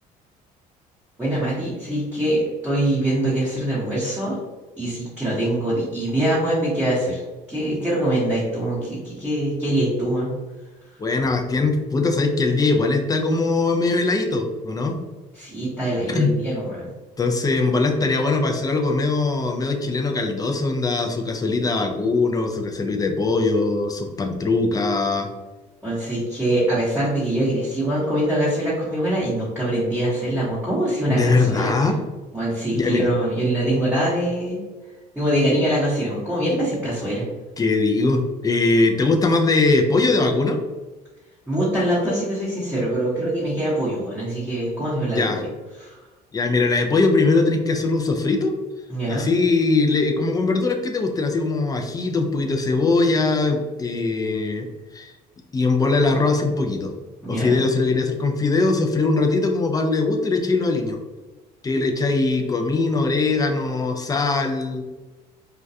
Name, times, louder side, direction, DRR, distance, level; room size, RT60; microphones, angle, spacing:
voice 1, 1.2-4.4 4.8-7.2 7.5-10.3 15.3-16.9 25.8-31.7 32.3-34.6 35.1-37.2 41.5-45.5 45.8-46.0 48.9-49.3 57.2-57.6, right 1 dB, 5° right, -10 dB, 0.9 m, -23 dB
voice 2, 11.0-15.0 16.1-16.3 17.2-25.3 31.1-32.0 32.7-33.1 37.6-40.6 45.1-45.4 46.3-48.6 49.1-54.7 54.9-55.1 55.5-56.9 57.3-61.0 61.6-64.8, left 3 dB, 20° left, 3 dB, 0.4 m, -21 dB
2.3 x 2.2 x 2.6 m, 1.2 s
supercardioid pair, 90°, 18 cm